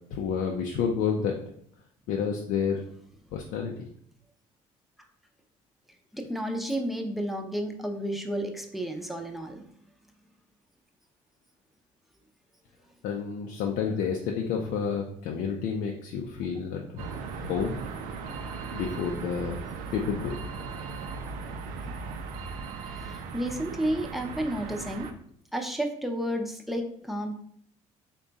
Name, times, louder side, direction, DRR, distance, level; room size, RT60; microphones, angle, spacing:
voice 1, 0.1-1.3 2.1-2.8 3.3-3.9 13.0-17.1 17.4-17.8 18.7-19.6 19.9-20.4, left 6 dB, 80° left, 1 dB, 0.5 m, -30 dB
voice 2, 6.1-9.6 22.9-25.1 25.5-27.4, right 1 dB, ahead, 3 dB, 0.5 m, -31 dB
sound 1, 17.0-25.1, right 5 dB, 85° right, 0.5 m, -38 dB
3.6 x 2.3 x 3.9 m, 0.64 s
cardioid pair, 100°, 14 cm